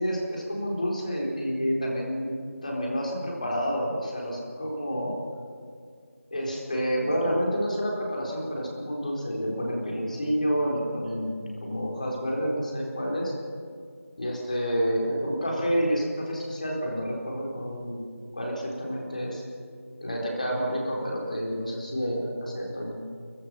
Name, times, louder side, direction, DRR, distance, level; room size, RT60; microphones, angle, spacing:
voice 1, 0.0-5.2 6.3-13.3 14.2-18.0 18.3-19.4 20.0-23.0, equal, 30° left, -2 dB, 4.1 m, -29 dB
28.5 x 15.5 x 5.9 m, 2.2 s
figure-of-eight pair, 170°, 8 cm